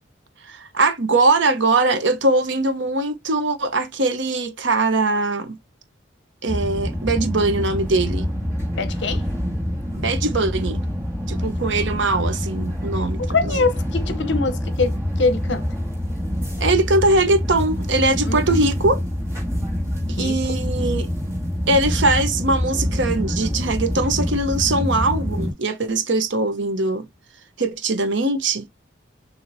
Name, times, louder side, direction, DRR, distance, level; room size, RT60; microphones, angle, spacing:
voice 1, 0.4-5.6 6.4-8.3 10.0-10.8 11.3-13.6 16.6-19.0 20.2-21.1 21.7-27.1 27.6-28.6, right 2 dB, 70° right, 0.9 m, -21 dB
sound 1, 6.5-25.5, equal, 15° right, 1.8 m, -26 dB
voice 2, 8.8-9.3 11.4-11.8 13.2-15.7 18.2-18.9 20.1-20.3, left 3 dB, 65° left, 0.8 m, -24 dB
6.8 x 2.9 x 2.7 m
head